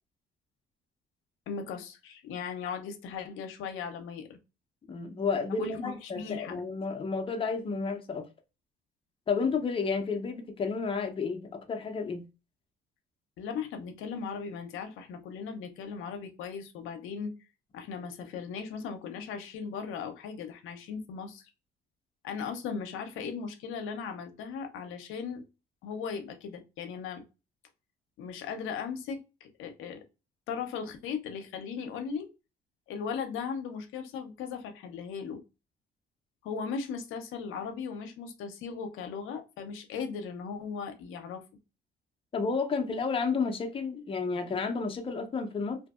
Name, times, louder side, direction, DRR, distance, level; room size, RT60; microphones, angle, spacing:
voice 1, 1.5-4.4 5.6-6.6 13.4-17.3 17.7-21.5 22.2-25.4 25.8-27.2 28.2-30.0 30.5-32.3 32.9-35.4 36.4-41.4, left 6 dB, 85° left, 0.5 m, -37 dB
voice 2, 4.9-8.3 9.3-12.3 42.3-45.8, left 5 dB, 25° left, 0.5 m, -31 dB
2.6 x 2.6 x 2.3 m
cardioid pair, 95°, 20 cm